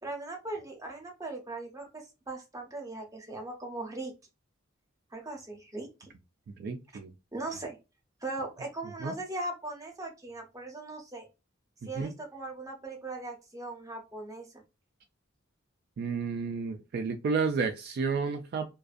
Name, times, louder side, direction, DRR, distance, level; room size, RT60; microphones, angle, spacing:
voice 1, 0.0-4.1 5.1-6.1 7.3-7.8 8.2-11.3 11.8-14.5, right 2 dB, 15° right, 0.7 m, -39 dB
voice 2, 6.6-7.1 9.0-9.1 11.8-12.1 16.0-18.7, right 5 dB, 55° right, 0.3 m, -31 dB
2.5 x 2.2 x 2.4 m
head